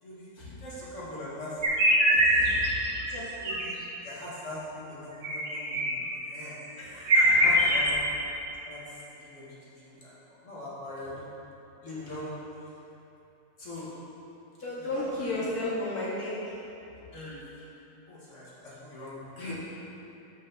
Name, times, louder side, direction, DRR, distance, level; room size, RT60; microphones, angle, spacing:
voice 1, 0.0-1.8 3.1-3.7 4.0-6.6 7.2-8.0 8.7-10.1 10.4-11.3 11.8-12.4 13.6-13.9 14.9-15.5 17.1-17.4 18.1-19.6, left 1 dB, 50° left, -9 dB, 2.3 m, -41 dB
sound 1, 1.6-3.0 3.4-3.6 5.2-6.0 6.6-6.7 7.0-7.9, equal, 60° right, 1.6 m, -23 dB
voice 2, 2.1-3.0 6.8-7.8 14.6-16.3, left 1 dB, 65° left, -9 dB, 2.6 m, -34 dB
6.6 x 5.3 x 6.9 m, 2.9 s
omnidirectional pair, 1.7 m